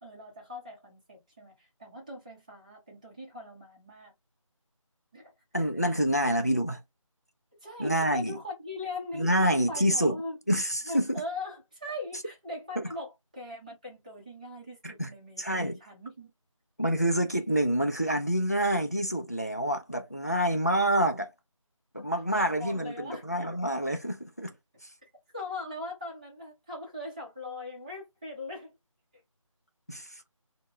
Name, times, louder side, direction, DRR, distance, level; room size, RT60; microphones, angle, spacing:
voice 1, 0.0-4.1 5.1-5.3 7.6-10.4 10.8-16.3 21.9-22.1 22.4-23.3 25.3-28.8, left 2 dB, 15° right, 0.7 m, -40 dB
voice 2, 5.5-6.8 7.8-8.4 9.1-10.2 10.5-11.2 12.8-12.9 14.8-15.1 15.4-15.8 16.8-21.3 21.9-24.5 29.9-30.2, equal, 30° left, 0.3 m, -27 dB
3.6 x 2.1 x 3.1 m
figure-of-eight pair, 170°, 17 cm